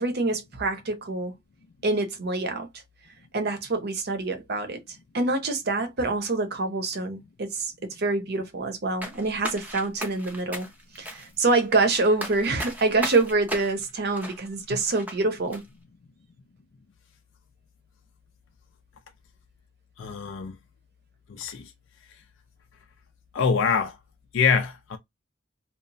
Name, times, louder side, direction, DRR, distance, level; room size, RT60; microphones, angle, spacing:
voice 1, 0.0-1.3 1.8-2.7 3.3-4.8 5.1-10.7 11.0-15.6, right 3 dB, 50° right, 0.6 m, -26 dB
sound 1, 9.0-15.2 15.5-15.6, right 1 dB, 10° right, 0.6 m, -37 dB
voice 2, 20.0-20.6 21.3-21.7 23.3-24.0 24.3-25.0, left 6 dB, 65° left, 0.4 m, -25 dB
2.9 x 2.0 x 2.6 m
head